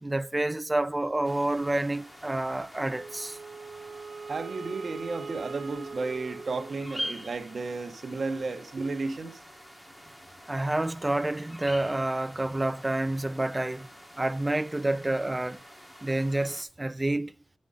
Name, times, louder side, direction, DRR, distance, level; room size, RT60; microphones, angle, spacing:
voice 1, 0.0-3.4 10.5-13.9 14.2-15.6 16.0-17.3, right 2 dB, 15° right, 0.3 m, -28 dB
sound 1, 1.2-16.6, equal, 10° left, 1.2 m, -46 dB
Wind instrument woodwind instrument, 2.9-7.3, right 4 dB, 70° right, 0.5 m, -42 dB
voice 2, 4.3-9.4, right 3 dB, 50° right, 0.9 m, -33 dB
9.5 x 5.3 x 3.7 m
wide cardioid pair, 100°, 0 cm